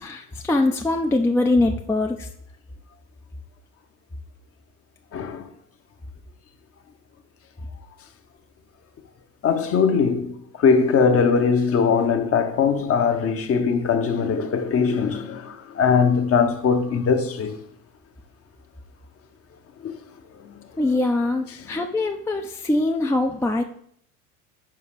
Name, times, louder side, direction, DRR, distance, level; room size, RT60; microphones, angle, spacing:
voice 1, 0.0-2.3 20.8-23.6, left 2 dB, 5° left, 0.5 m, -22 dB
voice 2, 5.1-5.5 9.4-17.6 19.8-19.9, left 5 dB, 35° left, 0.9 m, -21 dB
5.8 x 5.0 x 4.8 m
figure-of-eight pair, 65°, 43 cm